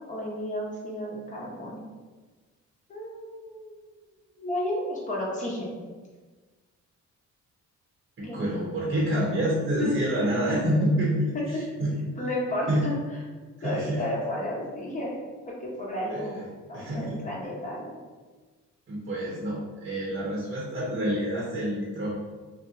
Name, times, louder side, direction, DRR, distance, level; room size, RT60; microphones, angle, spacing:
voice 1, 0.0-1.8 2.9-3.9 4.4-5.8 8.2-8.4 9.8-9.9 10.5-10.6 11.3-11.4 12.2-12.9 13.6-15.2 15.5-16.4 16.7-17.9, left 1 dB, 25° left, -4 dB, 1.1 m, -32 dB
voice 2, 8.2-12.1 12.7-12.8 13.6-14.0 16.1-16.2 16.7-17.2 18.9-22.1, right 1 dB, 40° right, -5 dB, 1.0 m, -27 dB
2.8 x 2.2 x 3.7 m, 1.3 s
cardioid pair, 90°, 30 cm